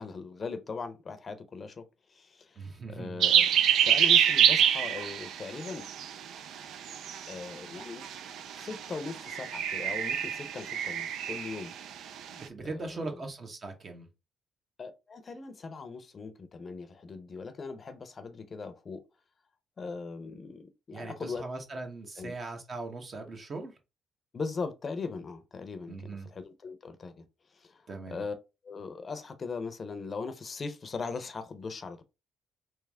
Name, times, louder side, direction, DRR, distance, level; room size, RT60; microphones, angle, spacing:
voice 1, 0.0-5.9 7.3-8.0 8.6-11.7 12.6-13.2 14.8-19.0 19.8-21.4 22.2-22.3 24.3-27.2 27.5-28.3 28.6-32.0, left 4 dB, 40° left, 0.6 m, -40 dB
voice 2, 2.6-3.3 12.3-14.1 20.9-23.8 25.9-26.3 27.9-28.2, right 3 dB, 45° right, 1.0 m, -40 dB
sound 1, 3.2-11.8, right 9 dB, 80° right, 0.4 m, -26 dB
3.3 x 3.0 x 3.5 m
cardioid pair, 90°, 0 cm